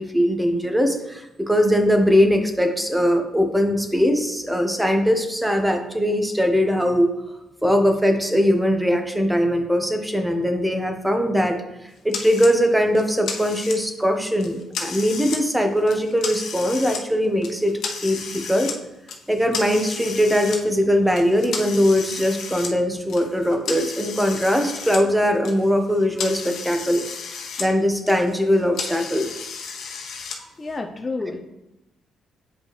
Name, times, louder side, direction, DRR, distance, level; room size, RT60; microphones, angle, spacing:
voice 1, 0.0-7.1 7.6-11.6 11.8-18.7 19.3-27.0 27.6-29.3, equal, 5° right, 5 dB, 1.0 m, -21 dB
sound 1, 12.1-12.5 12.9-14.0 14.4-15.4 15.8-17.0 17.4-18.8 19.1-20.6 21.1-25.0 25.3-27.7 28.0-30.4, left 5 dB, 70° left, 1.0 m, -33 dB
voice 2, 30.6-31.4, left 3 dB, 25° left, 3 dB, 0.6 m, -29 dB
8.0 x 5.2 x 3.1 m, 0.89 s
cardioid pair, 90°, 0 cm